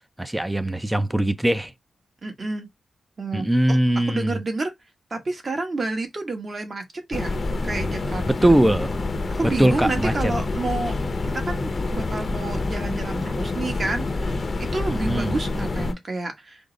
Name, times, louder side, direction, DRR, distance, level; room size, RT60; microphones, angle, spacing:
voice 1, 0.2-1.7 3.3-4.4 8.3-9.0 9.6-10.1 14.9-15.3, right 1 dB, 10° right, 0.5 m, -21 dB
voice 2, 2.2-2.7 3.2-3.8 4.1-4.7 5.1-6.8 7.1-7.4 7.6-8.5 9.3-10.9 11.3-16.7, right 3 dB, 40° right, 1.2 m, -29 dB
sound 1, 7.1-15.9, left 3 dB, 40° left, 0.7 m, -27 dB
5.0 x 2.0 x 3.8 m
cardioid pair, 80°, 0 cm